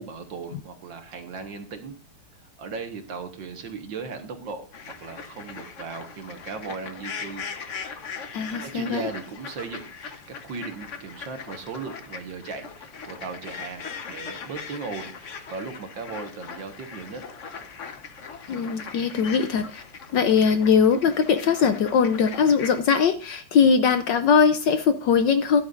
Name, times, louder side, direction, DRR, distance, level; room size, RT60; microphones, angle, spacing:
voice 1, 0.0-2.0 2.4-4.7 5.0-7.5 8.6-17.2, right 4 dB, 60° right, 6 dB, 2.0 m, -37 dB
sound 1, 4.7-22.8, left 6 dB, 45° left, 1.0 m, -40 dB
voice 2, 8.3-9.0 18.5-19.8 20.1-25.6, left 6 dB, 70° left, 9 dB, 1.2 m, -21 dB
14.0 x 11.5 x 2.5 m, 0.36 s
omnidirectional pair, 2.4 m